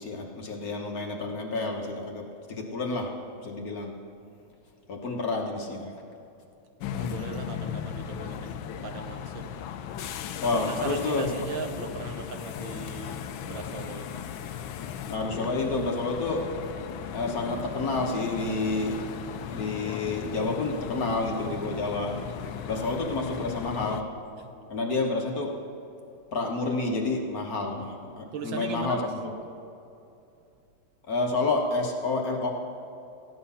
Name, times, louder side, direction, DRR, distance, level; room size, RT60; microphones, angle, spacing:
voice 1, 0.0-3.1 3.4-3.9 4.9-5.9 10.4-11.3 15.1-16.5 17.1-19.0 19.5-22.2 22.6-24.1 24.7-25.6 26.3-29.1 31.1-32.5, left 3 dB, 50° left, 1 dB, 1.5 m, -29 dB
sound 1, 6.8-24.0, left 8 dB, 80° left, 1.4 m, -37 dB
voice 2, 7.0-9.5 10.4-14.2 22.5-23.0 24.4-24.5 28.3-29.1, right 5 dB, 70° right, 6 dB, 1.6 m, -39 dB
15.0 x 10.5 x 5.7 m, 2.6 s
omnidirectional pair, 2.2 m